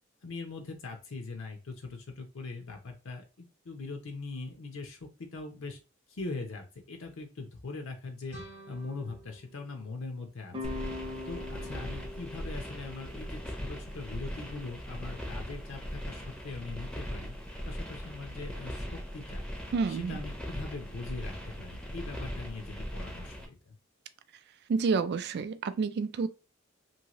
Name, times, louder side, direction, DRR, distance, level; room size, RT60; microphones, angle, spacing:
voice 1, 0.2-5.8 6.1-8.4 8.7-17.4 17.6-19.4 19.9-23.8, left 3 dB, 65° left, 0.6 m, -41 dB
sound 1, 8.3-11.1, right 1 dB, 85° left, 1.3 m, -51 dB
sound 2, 10.5-15.6, left 3 dB, 25° right, 0.7 m, -44 dB
sound 3, 10.6-23.5, equal, 5° left, 0.6 m, -39 dB
voice 2, 19.7-20.2 24.7-26.3, right 4 dB, 50° right, 0.3 m, -29 dB
2.7 x 2.7 x 2.9 m
head